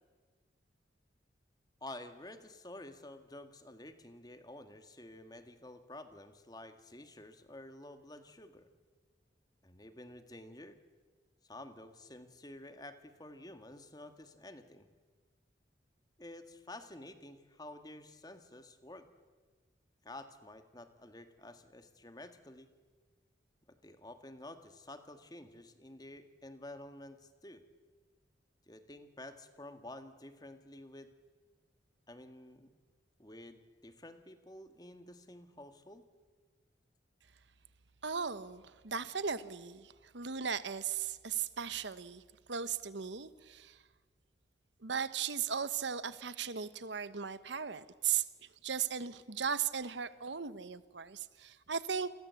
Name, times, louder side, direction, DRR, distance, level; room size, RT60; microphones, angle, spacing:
voice 1, 1.8-8.7 9.6-10.8 11.4-14.9 16.2-19.1 20.0-22.7 23.7-27.6 28.7-31.1 32.1-32.7 33.2-36.0, left 1 dB, 20° left, 8 dB, 1.7 m, -50 dB
voice 2, 38.0-42.2 42.5-43.8 44.8-48.2 48.6-52.1, right 7 dB, 75° right, 14 dB, 1.1 m, -37 dB
29.5 x 22.0 x 8.3 m, 1.4 s
head